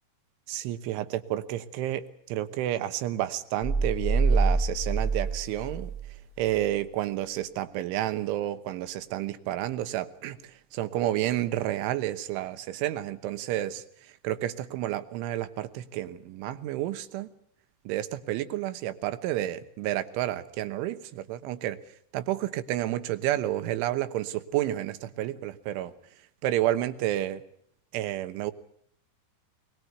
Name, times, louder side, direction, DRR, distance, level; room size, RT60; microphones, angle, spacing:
voice 1, 0.5-5.9 6.4-17.3 17.9-21.8 22.1-25.9 26.4-27.4 27.9-28.5, right 13 dB, 85° right, 12 dB, 3.6 m, -30 dB
sound 1, 3.6-6.2 6.5-6.6, right 3 dB, 10° right, 1.7 m, -26 dB
21.5 x 21.5 x 8.0 m, 0.66 s
omnidirectional pair, 5.4 m